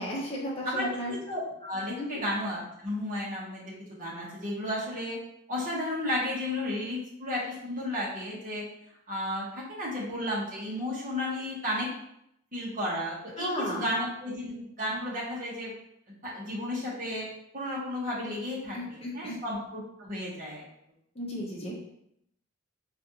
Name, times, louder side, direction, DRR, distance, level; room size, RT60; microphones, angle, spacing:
voice 1, 0.0-1.1 2.0-2.2 13.4-13.9 18.7-19.4 21.1-21.7, left 1 dB, 30° left, -4 dB, 0.7 m, -34 dB
voice 2, 0.6-3.6 4.0-5.2 5.5-8.6 9.1-11.9 12.5-15.7 16.2-17.3 17.5-20.6, left 1 dB, 40° right, -5 dB, 1.1 m, -33 dB
4.0 x 2.5 x 2.8 m, 0.76 s
head